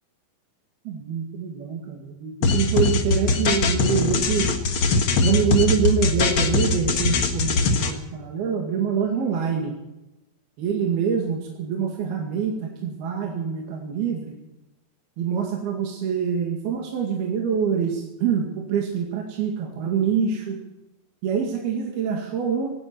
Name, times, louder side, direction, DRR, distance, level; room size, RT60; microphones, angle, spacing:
voice 1, 0.9-4.5 5.2-9.7 10.6-14.4 15.2-20.6 21.2-22.7, right 7 dB, 75° right, 0 dB, 4.1 m, -25 dB
sound 1, 2.4-7.9, left 4 dB, 55° left, 1.4 m, -21 dB
19.0 x 17.0 x 4.5 m, 0.97 s
omnidirectional pair, 4.6 m